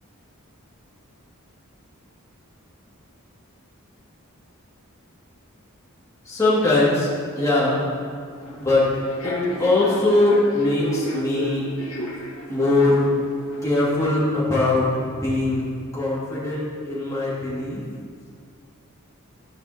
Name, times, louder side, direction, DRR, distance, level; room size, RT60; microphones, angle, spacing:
voice 1, 6.2-7.1 7.4-7.8 8.6-8.9 9.2-11.7 12.5-13.0 13.6-15.6 15.9-17.8, left 2 dB, 15° left, -9 dB, 2.3 m, -21 dB
Human voice / Subway metro underground, 8.3-13.8, left 1 dB, 70° left, 2.1 m, -33 dB
14.0 x 5.5 x 2.9 m, 2.1 s
head